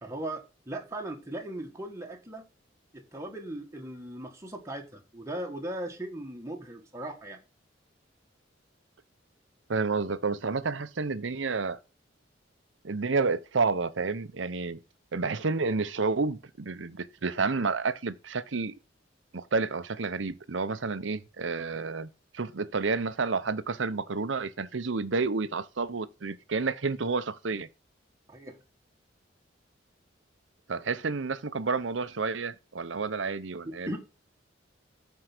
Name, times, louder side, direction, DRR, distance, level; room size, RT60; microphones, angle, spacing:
voice 1, 0.0-2.4 2.9-7.4 28.3-28.6 33.8-34.0, right 1 dB, 15° right, 1.5 m, -38 dB
voice 2, 9.7-11.8 12.8-14.8 15.1-18.7 19.3-27.7 30.7-34.0, right 4 dB, 80° right, 0.8 m, -30 dB
13.0 x 4.7 x 6.0 m
head